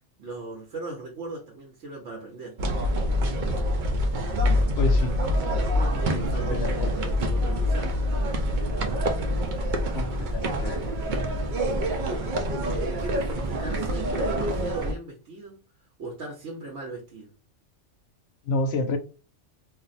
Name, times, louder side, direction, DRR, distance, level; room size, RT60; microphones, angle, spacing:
voice 1, 0.2-2.5 5.7-8.0 11.8-12.3 12.7-15.6 16.0-17.3, right 2 dB, 85° right, 1.0 m, -38 dB
sound 1, 2.6-14.9, equal, 55° right, 0.5 m, -26 dB
voice 2, 4.8-5.2 6.1-6.2 6.5-6.9 9.9-10.9 18.5-19.0, left 2 dB, 65° left, 0.8 m, -29 dB
2.5 x 2.0 x 3.9 m
omnidirectional pair, 1.2 m